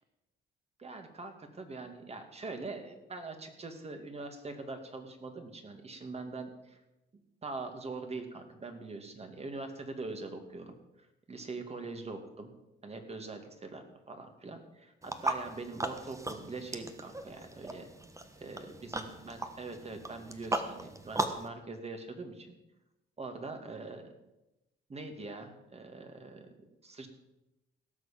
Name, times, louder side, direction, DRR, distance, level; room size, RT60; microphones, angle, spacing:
voice 1, 0.8-6.8 7.1-10.7 11.3-12.5 12.8-17.9 18.4-22.5 23.2-24.1 24.9-27.1, right 3 dB, 30° right, 5 dB, 2.4 m, -43 dB
sound 1, 15.0-21.5, right 2 dB, 15° right, 1.4 m, -38 dB
17.0 x 6.5 x 7.5 m, 0.94 s
cardioid pair, 90°, 20 cm